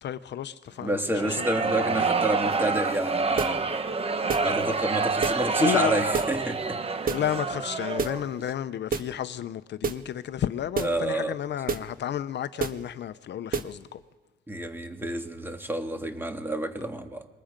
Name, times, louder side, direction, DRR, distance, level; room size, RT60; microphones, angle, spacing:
voice 1, 0.0-2.2 5.6-6.0 7.1-14.0, left 10 dB, 60° left, 0.7 m, -32 dB
voice 2, 0.8-3.8 4.4-6.8 10.8-11.4 14.5-17.3, right 1 dB, 10° right, 2.2 m, -29 dB
sound 1, 1.1-8.3, right 4 dB, 30° right, 1.3 m, -27 dB
sound 2, 2.5-2.7 3.4-3.6 4.3-4.5 5.2-5.4 6.1-6.4 7.1-7.3 8.0-8.2 8.9-9.1 9.8-10.1 10.7-11.0 11.7-11.9 12.6-12.8 13.5-13.8, right 5 dB, 45° right, 1.4 m, -29 dB
27.0 x 22.0 x 5.2 m
cardioid pair, 90°, 20 cm